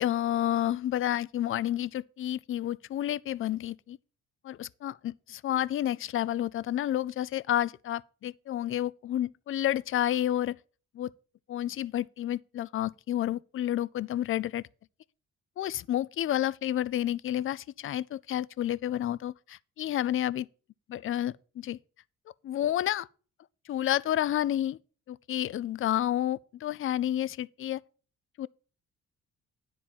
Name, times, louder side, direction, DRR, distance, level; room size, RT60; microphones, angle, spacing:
voice 1, 0.0-4.0 4.4-10.6 10.9-11.1 11.5-14.6 15.6-20.5 20.9-21.8 22.4-23.1 23.7-24.8 25.1-27.8 28.4-28.5, left 12 dB, 45° left, 0.4 m, -30 dB
10.0 x 4.3 x 7.0 m
cardioid pair, 90°, 30 cm